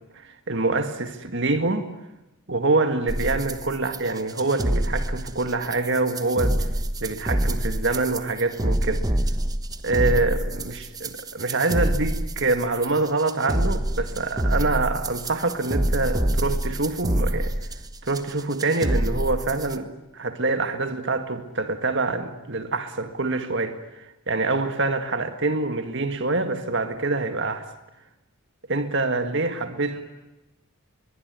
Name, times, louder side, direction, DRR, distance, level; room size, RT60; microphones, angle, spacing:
voice 1, 0.1-1.9 2.5-6.7 7.0-9.1 9.8-17.5 18.0-27.6 28.7-30.0, right 3 dB, 55° right, 1.9 m, -25 dB
sound 1, 3.1-19.8, right 1 dB, 15° right, 1.1 m, -26 dB
voice 2, 29.5-30.0, right 1 dB, 70° right, 3.2 m, -44 dB
23.0 x 22.5 x 9.5 m
head